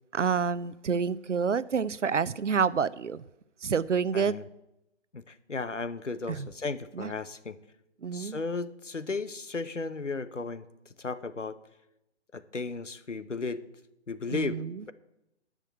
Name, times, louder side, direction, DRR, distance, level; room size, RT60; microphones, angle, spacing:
voice 1, 0.1-3.2 3.6-4.3 6.3-6.5 7.0-7.1 8.0-8.4 14.3-14.8, right 6 dB, 80° right, 0.6 m, -28 dB
voice 2, 4.1-4.5 5.1-7.6 8.1-10.7 11.0-11.6 12.3-13.6 14.1-14.9, left 4 dB, 85° left, 0.9 m, -35 dB
10.0 x 6.4 x 7.6 m
figure-of-eight pair, 135°, 36 cm